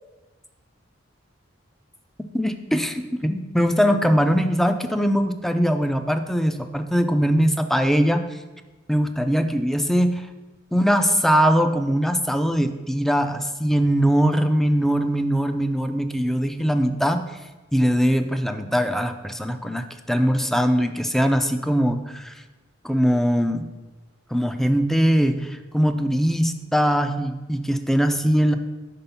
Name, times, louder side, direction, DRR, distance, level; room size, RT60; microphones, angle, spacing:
voice 1, 2.3-8.2 8.9-10.2 10.7-17.2 17.7-22.3 22.8-23.7 24.3-28.6, equal, ahead, 8 dB, 0.3 m, -21 dB
5.4 x 4.3 x 5.6 m, 1.2 s
head